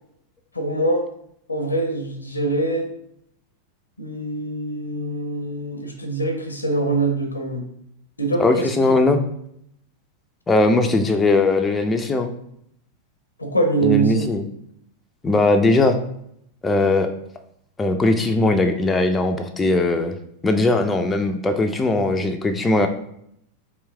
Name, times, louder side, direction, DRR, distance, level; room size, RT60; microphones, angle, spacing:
voice 1, 0.5-1.0 1.5-2.9 4.0-7.6 8.2-9.0 13.4-14.3, right 2 dB, 80° left, 5 dB, 0.6 m, -24 dB
voice 2, 8.4-9.2 10.5-12.3 13.8-14.4 15.2-16.0 16.6-17.1 17.8-20.1 20.4-22.9, left 2 dB, 15° left, 5 dB, 0.3 m, -19 dB
3.1 x 3.0 x 3.4 m, 0.72 s
figure-of-eight pair, 90°, 0 cm